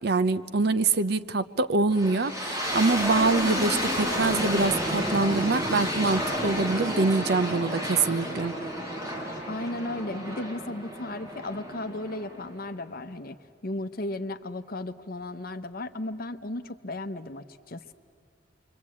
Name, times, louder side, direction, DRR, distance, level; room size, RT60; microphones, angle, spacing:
voice 1, 0.0-8.5, right 3 dB, 60° right, 13 dB, 0.7 m, -25 dB
sound 1, 1.9-12.8, equal, 20° right, 4.7 m, -31 dB
voice 2, 9.5-13.4 13.6-17.9, left 2 dB, 55° left, 9 dB, 0.9 m, -35 dB
28.0 x 23.5 x 8.6 m, 2.4 s
head